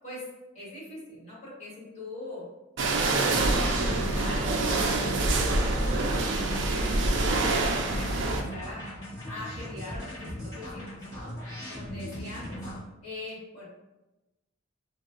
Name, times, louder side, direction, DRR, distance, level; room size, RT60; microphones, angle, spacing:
voice 1, 0.5-2.5 2.9-8.8 9.3-11.3 11.7-12.6 13.0-13.7, left 1 dB, 35° left, -8 dB, 1.5 m, -42 dB
sound 1, 2.8-8.4, right 2 dB, 60° right, 0.4 m, -26 dB
sound 2, 3.2-12.8, equal, 15° left, 1.3 m, -39 dB
sound 3, 3.4-8.2, equal, 85° left, 0.4 m, -36 dB
4.3 x 2.0 x 2.5 m, 1.0 s
head